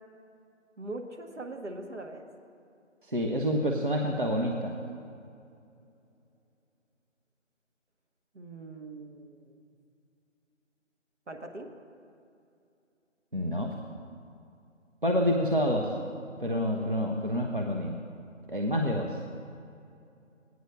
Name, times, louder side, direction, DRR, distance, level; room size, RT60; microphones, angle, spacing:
voice 1, 0.8-2.2 8.3-9.5 11.3-11.7, right 2 dB, 65° right, 4 dB, 1.1 m, -41 dB
voice 2, 3.1-4.7 13.3-13.7 15.0-15.9 16.4-18.0 18.5-19.2, equal, 45° right, 1 dB, 0.5 m, -28 dB
18.5 x 9.2 x 2.2 m, 2.6 s
figure-of-eight pair, 175°, 38 cm